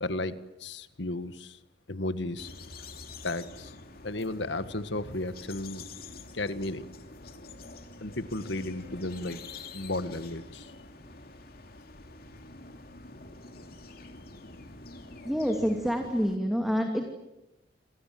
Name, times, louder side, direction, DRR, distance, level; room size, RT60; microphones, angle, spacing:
voice 1, 0.0-1.6 1.9-2.5 3.2-3.7 4.0-5.8 6.3-6.9 8.0-9.4 9.7-10.7, left 2 dB, 70° left, 11 dB, 1.7 m, -34 dB
sound 1, 2.4-16.4, left 3 dB, 50° left, 2.8 m, -47 dB
voice 2, 15.2-17.1, equal, ahead, 3 dB, 2.5 m, -27 dB
29.0 x 25.5 x 7.7 m, 0.93 s
head